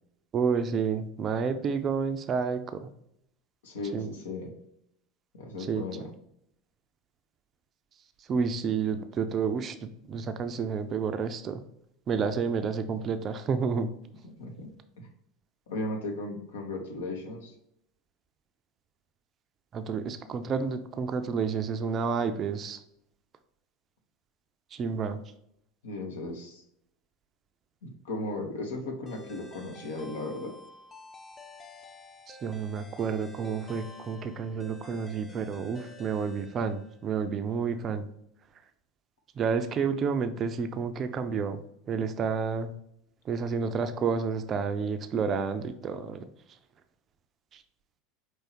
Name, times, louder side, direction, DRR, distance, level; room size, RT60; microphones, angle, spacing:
voice 1, 0.3-2.9 3.9-4.1 5.7-5.8 8.3-11.6 12.1-13.9 19.7-22.8 24.7-25.2 32.3-38.1 39.4-41.6 41.9-42.7 43.3-46.2 47.5-47.6, right 6 dB, 35° right, 9 dB, 0.4 m, -30 dB
voice 2, 3.6-4.5 5.3-6.1 9.0-9.1 14.2-14.7 15.0-15.1 15.7-17.5 25.8-26.6 27.8-30.5, left 2 dB, 65° left, 2 dB, 0.9 m, -36 dB
sound 1, 29.1-37.2, left 1 dB, 25° left, 0.7 m, -50 dB
5.4 x 3.1 x 2.9 m, 0.75 s
figure-of-eight pair, 75°, 0 cm